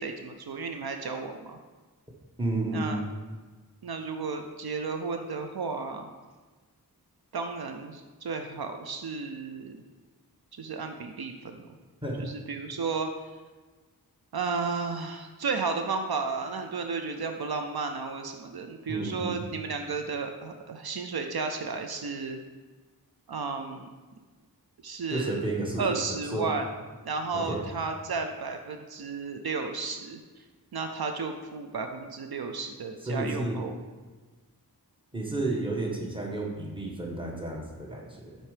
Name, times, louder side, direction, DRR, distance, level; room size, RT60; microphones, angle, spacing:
voice 1, 0.0-1.6 2.7-3.0 3.8-6.1 7.3-9.8 10.6-11.7 12.2-13.1 14.3-22.4 23.3-23.9 24.8-25.4 25.8-26.7 27.1-30.2 30.7-33.7, right 4 dB, 75° right, 5 dB, 0.6 m, -33 dB
voice 2, 2.4-2.9 12.0-12.3 18.9-19.5 25.1-26.5 27.3-27.7 33.0-33.6 35.1-38.4, right 2 dB, 15° right, -1 dB, 1.4 m, -32 dB
7.2 x 4.4 x 5.0 m, 1.3 s
wide cardioid pair, 70°, 38 cm